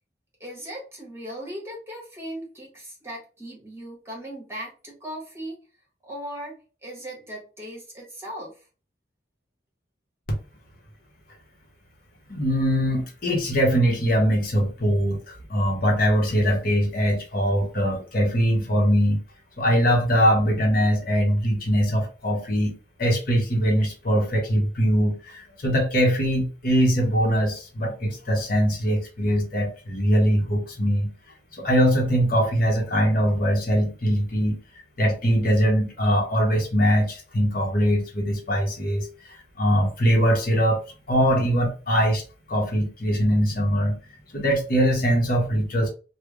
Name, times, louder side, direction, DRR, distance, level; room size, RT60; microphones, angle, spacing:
voice 1, 0.4-5.6 6.0-8.6, equal, 15° right, 1.4 m, -38 dB
voice 2, 12.3-19.2 19.6-22.7 23.0-31.1 31.5-34.6 35.0-40.8 41.1-42.2 42.5-44.0 44.3-45.9, equal, 50° left, 1.0 m, -22 dB
3.3 x 2.2 x 3.6 m
head